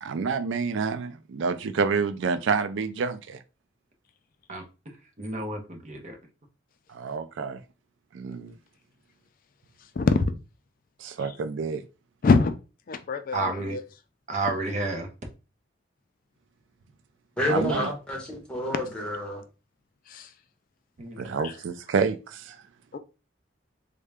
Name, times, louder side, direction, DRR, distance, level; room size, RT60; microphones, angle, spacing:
voice 1, 0.0-3.4 6.9-7.6 8.1-8.5 11.0-11.8 17.5-17.9 21.2-22.6, right 5 dB, 80° right, 0.4 m, -28 dB
voice 2, 5.2-6.2 13.3-13.8 14.3-15.1 21.0-21.3, right 2 dB, 40° right, 0.7 m, -30 dB
voice 3, 12.2-12.5 12.9-13.8 20.1-20.3 21.4-21.5 22.9-23.0, left 4 dB, 50° left, 0.4 m, -23 dB
voice 4, 17.4-19.4, left 1 dB, 5° left, 1.0 m, -29 dB
3.6 x 2.2 x 3.4 m
head